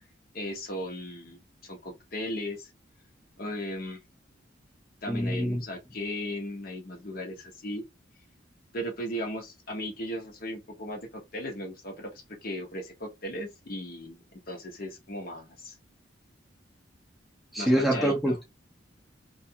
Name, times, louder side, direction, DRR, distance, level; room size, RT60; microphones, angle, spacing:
voice 1, 0.3-2.7 3.4-4.0 5.0-7.8 8.7-12.1 12.4-15.7 17.6-18.4, equal, 50° left, 0.8 m, -36 dB
voice 2, 5.1-5.6 17.5-18.5, equal, ahead, 0.5 m, -25 dB
2.5 x 2.3 x 2.7 m
head